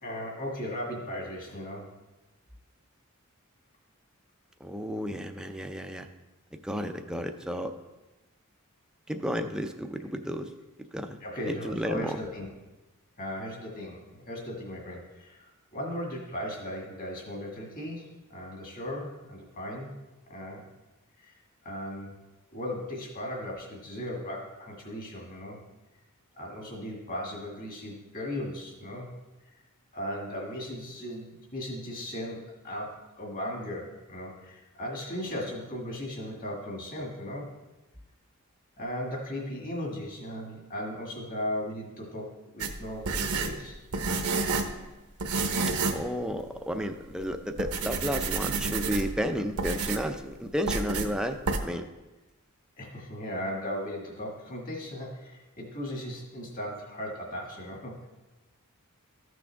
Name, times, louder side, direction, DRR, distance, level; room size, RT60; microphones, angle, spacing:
voice 1, 0.0-1.9 11.2-12.5 13.2-19.9 20.3-20.6 21.2-21.3 21.6-22.2 22.5-25.6 26.4-29.1 29.5-29.6 29.9-37.5 38.8-43.8 52.8-58.0, left 1 dB, 40° left, -1 dB, 2.0 m, -37 dB
voice 2, 4.6-6.1 6.6-7.7 9.1-10.5 10.9-11.2 11.6-12.2 45.9-51.9, equal, 5° right, 5 dB, 0.5 m, -32 dB
sound 1, 42.6-44.8 45.2-46.1 46.4-46.5 47.1-47.3 47.6-49.2 49.6-50.1 50.7-51.1 51.5-51.6, right 4 dB, 80° right, 0.9 m, -29 dB
13.5 x 6.1 x 3.5 m, 1.1 s
head